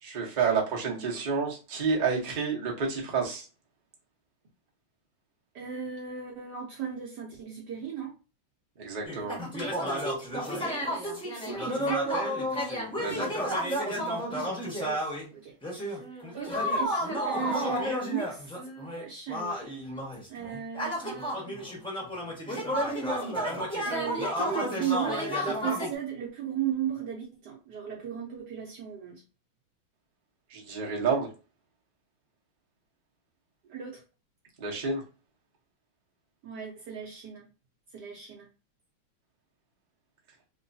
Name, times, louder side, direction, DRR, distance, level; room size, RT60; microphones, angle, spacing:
voice 1, 0.0-3.5 8.8-9.4 13.0-13.3 30.5-31.3 34.6-35.0, right 5 dB, 45° right, -2 dB, 0.5 m, -29 dB
voice 2, 0.8-1.2 5.5-8.2 10.8-12.1 14.8-16.0 16.3-18.5 19.0-19.7 20.3-21.2 23.8-29.2 33.6-34.0 36.4-37.4 37.9-38.5, right 8 dB, 65° right, -1 dB, 1.1 m, -36 dB
sound 1, 9.0-15.3 15.6-25.9, equal, 5° left, 0.8 m, -31 dB
3.1 x 3.0 x 2.6 m, 0.32 s
omnidirectional pair, 2.2 m